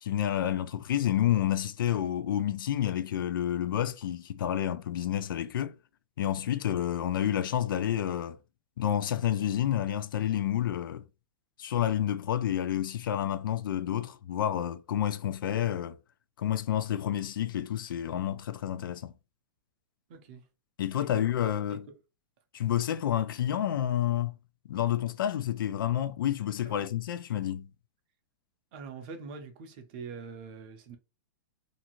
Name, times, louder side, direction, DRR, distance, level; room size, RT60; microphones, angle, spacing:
voice 1, 0.0-5.8 6.2-8.4 8.8-11.0 11.6-16.0 16.4-19.1 20.8-21.8 22.5-24.3 24.7-27.7, left 11 dB, 85° left, 0.4 m, -29 dB
voice 2, 20.1-20.5 21.0-22.0 26.6-26.8 28.7-31.0, right 5 dB, 30° right, 0.5 m, -44 dB
2.6 x 2.5 x 2.9 m
supercardioid pair, 180°, 11 cm